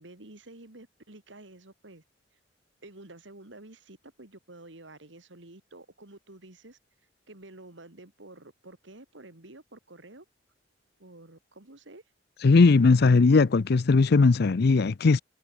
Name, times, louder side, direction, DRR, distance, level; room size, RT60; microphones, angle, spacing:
voice 1, 0.0-2.0 2.8-6.8 7.3-10.3 11.0-12.0, right 2 dB, 80° right, 2.7 m, -49 dB
voice 2, 12.4-15.2, left 4 dB, 60° left, 0.5 m, -19 dB
head